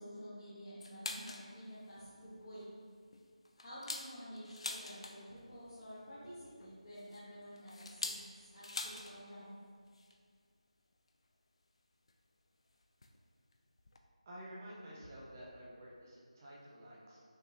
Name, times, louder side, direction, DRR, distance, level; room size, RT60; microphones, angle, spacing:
voice 1, 0.0-2.7 3.6-9.6, equal, 35° left, -12 dB, 1.0 m, -50 dB
sound 1, 0.8-1.5 1.9-2.0 2.4-2.6 3.1-5.4 6.6-9.2 9.4-9.5 9.8-10.1 11.1-11.2 12.1-12.2 13.0-13.2 13.5-13.6 13.8-14.0, left 2 dB, 50° left, 0.4 m, -44 dB
voice 2, 14.3-17.2, equal, 25° right, -6 dB, 0.8 m, -51 dB
5.7 x 3.0 x 2.7 m, 2.1 s
figure-of-eight pair, 165°, 4 cm